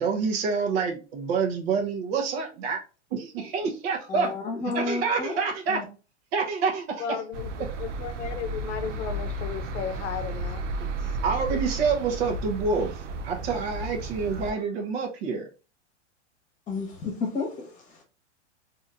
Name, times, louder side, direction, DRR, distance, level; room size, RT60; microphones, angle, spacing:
voice 1, 0.0-2.8 3.1-4.3 4.7-5.8 6.3-7.0 11.2-15.5, right 5 dB, 55° right, 1 dB, 0.9 m, -27 dB
voice 2, 4.1-5.4 5.7-5.8 16.7-18.0, left 4 dB, 20° left, 2 dB, 1.1 m, -32 dB
voice 3, 7.0-7.5 7.8-11.1, left 7 dB, 70° left, 9 dB, 0.7 m, -35 dB
sound 1, 7.3-14.5, right 2 dB, 85° right, 0.6 m, -33 dB
3.9 x 2.7 x 2.4 m, 0.33 s
hypercardioid pair, 135°, 36 cm